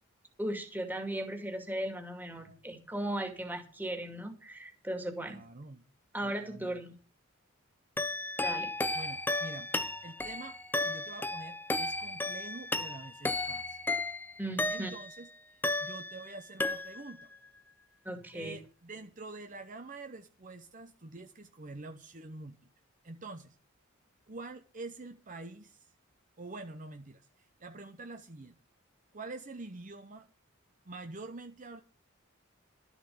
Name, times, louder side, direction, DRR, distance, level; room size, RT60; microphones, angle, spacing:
voice 1, 0.4-5.4 6.1-7.0 8.4-8.7 14.4-14.9 18.0-18.5, right 1 dB, 10° right, 5 dB, 2.3 m, -37 dB
voice 2, 5.3-5.9 6.2-6.8 8.9-9.7 10.0-10.6 10.8-13.8 14.7-15.3 15.8-17.3 18.3-22.6 23.0-23.6 24.3-25.9 26.4-28.6 29.1-30.3 30.9-31.8, right 2 dB, 40° right, 7 dB, 0.9 m, -46 dB
sound 1, 8.0-15.2 15.6-16.3 16.6-17.2, left 2 dB, 10° left, 0.7 m, -34 dB
13.0 x 8.2 x 7.0 m, 0.37 s
head